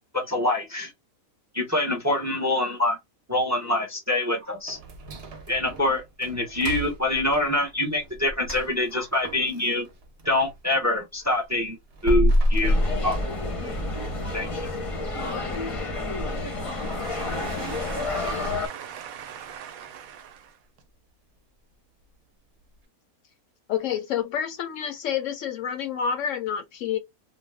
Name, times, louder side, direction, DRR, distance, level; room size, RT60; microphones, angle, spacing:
voice 1, 0.1-0.9 1.5-3.0 3.3-4.8 5.5-9.9 10.2-11.8 12.0-13.4 14.3-14.5, left 1 dB, 25° right, 0.3 m, -25 dB
sound 1, 4.7-10.6 11.0-13.8 14.2-14.3 14.8-14.9 15.4-15.7 16.0-16.1 16.7-16.8, left 1 dB, 55° right, 0.8 m, -28 dB
sound 2, 12.6-18.7, left 2 dB, 30° left, 0.6 m, -30 dB
voice 2, 16.7-20.4, right 9 dB, 75° right, 1.0 m, -40 dB
voice 3, 23.7-27.0, left 8 dB, 70° left, 0.8 m, -28 dB
2.5 x 2.2 x 3.3 m
omnidirectional pair, 1.5 m